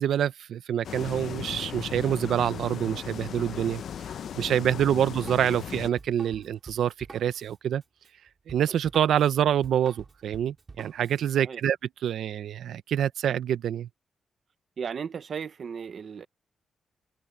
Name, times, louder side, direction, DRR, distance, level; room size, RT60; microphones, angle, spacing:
voice 1, 0.0-3.8 4.3-7.8 8.5-11.8 12.0-13.9, right 10 dB, 85° right, 0.7 m, -26 dB
sound 1, 0.8-5.9, left 8 dB, 65° left, 0.6 m, -37 dB
Drum kit, 4.8-11.3, right 4 dB, 30° right, 3.7 m, -48 dB
voice 2, 14.8-16.3, right 6 dB, 45° right, 0.7 m, -35 dB
wide cardioid pair, 165°, 0 cm